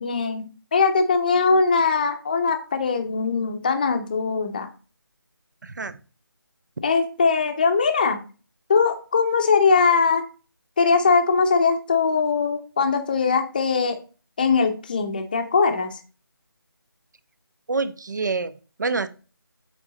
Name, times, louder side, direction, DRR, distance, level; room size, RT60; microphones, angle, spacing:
voice 1, 0.0-4.7 6.8-8.2 8.7-10.3 10.8-14.0 14.4-16.0, left 5 dB, 20° left, 6 dB, 0.8 m, -21 dB
voice 2, 5.6-6.0 17.7-19.1, right 4 dB, 50° right, 13 dB, 0.8 m, -27 dB
8.7 x 3.9 x 4.0 m, 0.35 s
figure-of-eight pair, 170°, 12 cm